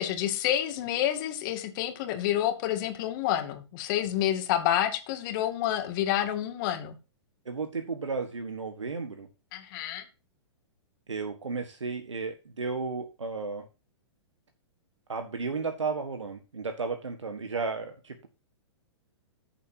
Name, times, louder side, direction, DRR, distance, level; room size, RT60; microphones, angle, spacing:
voice 1, 0.0-7.0 9.5-10.0, left 11 dB, 45° left, 7 dB, 2.3 m, -28 dB
voice 2, 7.4-9.3 11.1-13.7 15.1-18.3, right 4 dB, 85° right, 6 dB, 1.6 m, -33 dB
14.0 x 7.4 x 2.8 m, 0.30 s
hypercardioid pair, 115°, 15 cm